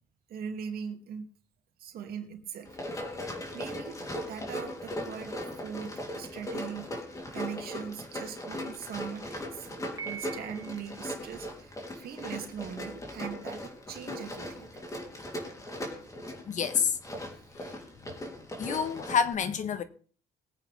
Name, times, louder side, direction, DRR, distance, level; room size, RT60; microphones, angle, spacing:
voice 1, 0.3-1.2 1.8-2.8 3.5-6.9 7.3-9.7 10.0-14.8, right 7 dB, 65° right, 2.6 m, -41 dB
Run, 2.6-19.3, left 1 dB, 20° left, 3.3 m, -39 dB
Piano, 10.0-11.1, right 7 dB, 20° right, 1.0 m, -42 dB
voice 2, 16.5-17.0 18.6-19.8, left 6 dB, 45° left, 1.2 m, -28 dB
22.0 x 9.0 x 3.5 m
cardioid pair, 110°, 17 cm